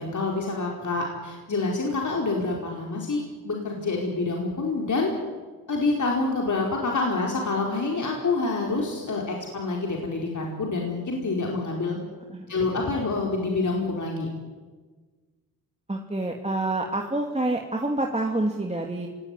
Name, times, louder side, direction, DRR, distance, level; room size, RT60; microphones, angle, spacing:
voice 1, 0.0-5.1 5.7-12.0 12.5-14.3, left 3 dB, 50° left, 0 dB, 4.8 m, -27 dB
voice 2, 15.9-19.1, right 2 dB, 15° right, 1 dB, 2.8 m, -27 dB
25.0 x 18.5 x 9.9 m, 1.4 s
supercardioid pair, 50°, 39 cm